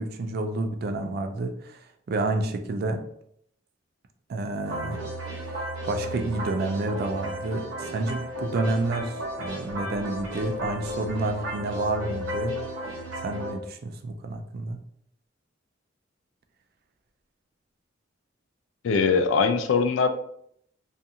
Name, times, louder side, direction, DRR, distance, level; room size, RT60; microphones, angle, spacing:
voice 1, 0.0-3.0 4.3-12.6 13.2-14.8, right 2 dB, 50° right, 7 dB, 0.3 m, -30 dB
sound 1, 4.6-13.5, equal, 70° right, 0.9 m, -34 dB
voice 2, 18.8-20.1, left 5 dB, 70° left, 7 dB, 0.3 m, -21 dB
2.5 x 2.3 x 2.7 m, 0.69 s
head